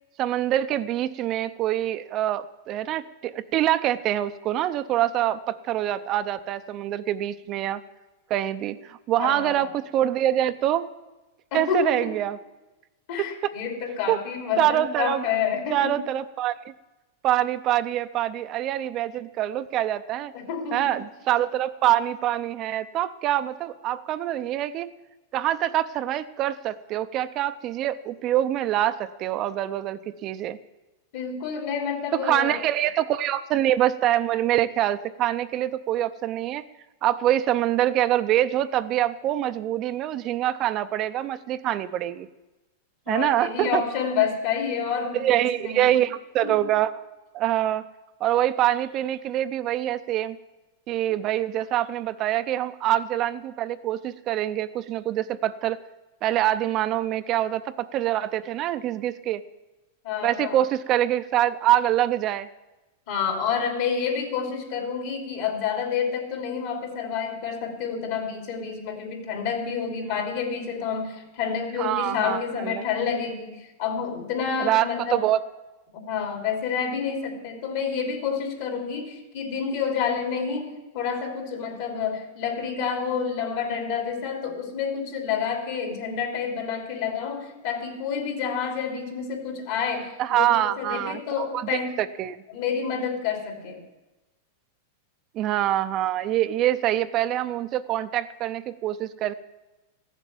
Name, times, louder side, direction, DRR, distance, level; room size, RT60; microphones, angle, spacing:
voice 1, 0.2-7.8 8.3-10.9 11.5-12.4 14.1-14.2 14.6-15.2 15.7-16.7 17.2-20.3 20.7-24.9 25.3-30.6 32.2-36.6 37.0-42.3 43.1-43.8 45.1-46.9 47.3-47.8 48.2-50.4 50.9-55.8 56.2-59.4 60.2-62.5 71.8-72.8 74.6-75.4 90.2-91.7 92.0-92.4 95.3-99.3, right 12 dB, 40° right, 12 dB, 0.5 m, -25 dB
voice 2, 9.2-9.7 11.5-12.2 13.1-16.0 20.3-21.0 31.1-32.6 43.1-46.0 46.4-46.5 60.0-60.6 63.1-75.2 75.9-91.9 92.5-93.8, left 6 dB, 60° left, 2 dB, 3.1 m, -29 dB
14.5 x 7.4 x 7.1 m, 1.1 s
hypercardioid pair, 130°, 0 cm